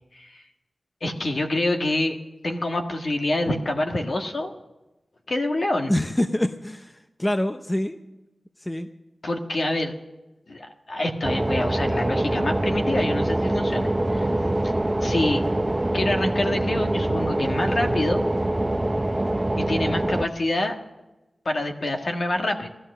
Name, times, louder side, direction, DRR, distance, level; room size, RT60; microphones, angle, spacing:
voice 1, 0.1-0.4 1.0-2.2 2.4-4.5 5.3-5.9 9.2-9.9 10.5-14.3 14.6-14.7 15.0-15.4 15.9-18.2 19.6-20.8 21.4-22.7, left 1 dB, 55° left, 3 dB, 1.6 m, -26 dB
voice 2, 5.9-8.0 8.6-8.9, left 1 dB, 15° left, 8 dB, 0.6 m, -25 dB
sound 1, 11.2-20.3, right 1 dB, 20° right, 0.7 m, -24 dB
16.5 x 13.0 x 6.7 m, 1.0 s
wide cardioid pair, 90°, 0 cm